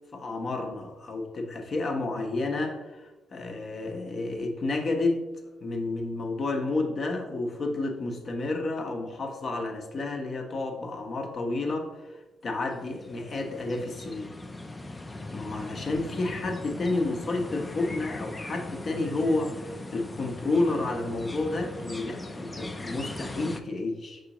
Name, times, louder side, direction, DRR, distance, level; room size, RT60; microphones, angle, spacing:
voice 1, 0.1-5.2 5.6-14.3 15.3-24.2, left 2 dB, 45° left, 3 dB, 0.7 m, -30 dB
sound 1, 12.7-23.6, left 2 dB, 20° left, 0.4 m, -39 dB
4.8 x 3.7 x 2.9 m, 1.1 s
cardioid pair, 90°, 0 cm